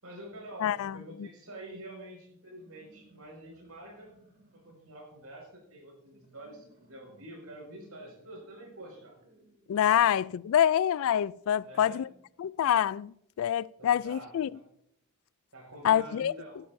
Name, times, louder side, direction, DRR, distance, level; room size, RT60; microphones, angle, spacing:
voice 1, 0.0-4.1 4.5-9.2 9.9-10.1 11.6-12.1 13.8-14.6 15.5-16.6, right 1 dB, 90° right, 5.5 m, -47 dB
voice 2, 0.6-1.3 9.7-12.1 12.4-14.5 15.8-16.3, left 10 dB, 65° left, 0.3 m, -26 dB
sound 1, 2.4-10.2, right 2 dB, 50° right, 2.9 m, -63 dB
15.0 x 11.5 x 2.7 m
head